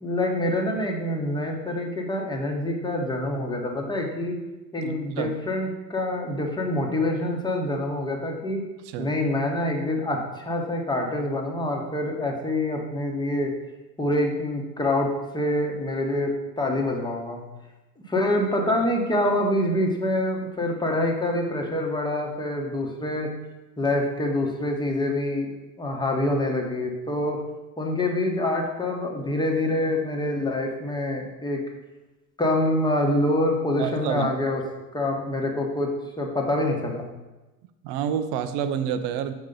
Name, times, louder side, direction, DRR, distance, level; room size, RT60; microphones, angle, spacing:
voice 1, 0.0-4.4 4.7-8.6 9.0-13.5 14.0-17.4 18.1-23.3 23.8-27.4 27.8-31.6 32.4-34.6 34.9-35.9 36.2-37.0, left 1 dB, 10° left, 1 dB, 1.2 m, -26 dB
voice 2, 4.8-5.3 8.9-9.1 33.8-34.3 37.8-39.3, right 8 dB, 55° right, 10 dB, 0.7 m, -28 dB
6.4 x 4.9 x 3.9 m, 1.1 s
hypercardioid pair, 85°, 49 cm